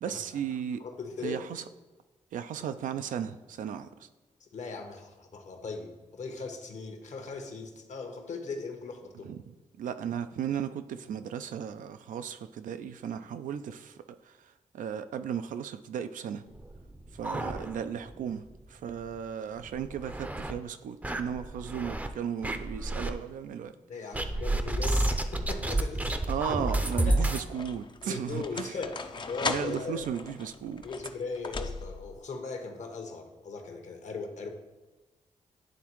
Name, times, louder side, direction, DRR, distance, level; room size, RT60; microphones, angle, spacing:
voice 1, 0.0-0.8 1.2-1.6 2.3-4.1 9.2-14.0 14.2-16.4 17.1-23.7 26.3-28.8 29.4-30.8, right 8 dB, 80° right, 11 dB, 0.4 m, -35 dB
voice 2, 0.8-1.5 2.6-2.7 4.4-9.3 23.9-26.3 27.1-27.3 28.0-30.0 30.8-34.5, left 4 dB, 65° left, 4 dB, 1.0 m, -39 dB
sound 1, 16.5-18.1 18.4-18.5 18.9-19.0 19.6-20.5 21.0-22.1 22.4-23.1 24.1-27.5, right 1 dB, 10° right, 0.5 m, -30 dB
sound 2, 26.9-32.2, left 4 dB, 35° left, 0.4 m, -38 dB
10.0 x 3.6 x 3.0 m, 1.2 s
cardioid pair, 70°, 13 cm